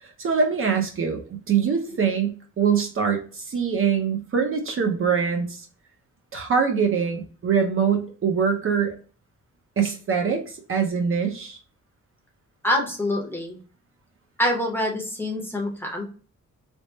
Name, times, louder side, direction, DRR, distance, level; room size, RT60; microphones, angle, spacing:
voice 1, 0.0-5.7 6.3-8.9 9.8-11.6, right 6 dB, 45° right, 3 dB, 0.6 m, -24 dB
voice 2, 12.6-13.6 14.4-16.1, left 1 dB, 5° left, -1 dB, 0.7 m, -25 dB
3.4 x 2.1 x 3.9 m, 0.39 s
wide cardioid pair, 175°, 29 cm